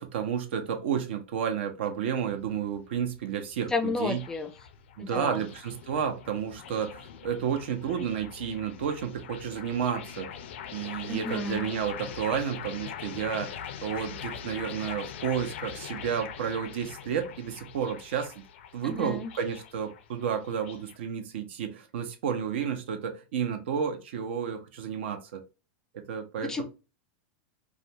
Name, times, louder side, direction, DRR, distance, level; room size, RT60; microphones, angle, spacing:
voice 1, 0.0-4.2 5.0-10.3 10.7-18.3 18.7-25.4 25.9-26.6, right 8 dB, 75° right, 0.7 m, -31 dB
sound 1, 2.0-21.0, left 8 dB, 75° left, 0.4 m, -43 dB
voice 2, 3.7-4.5 5.0-5.4 11.1-11.7 18.8-19.3 26.4-26.6, left 3 dB, 10° left, 0.3 m, -32 dB
2.4 x 2.2 x 2.8 m
supercardioid pair, 160°, 6 cm